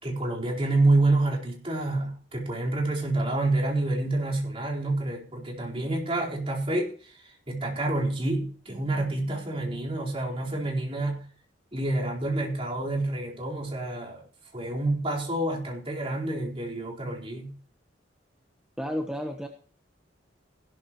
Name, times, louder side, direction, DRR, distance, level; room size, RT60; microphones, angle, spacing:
voice 1, 0.0-6.9 7.5-11.2 11.7-14.2 14.5-17.5, right 2 dB, 30° right, -3 dB, 4.4 m, -28 dB
voice 2, 18.8-19.5, equal, 5° right, 2 dB, 1.1 m, -31 dB
16.5 x 13.0 x 3.1 m, 0.41 s
head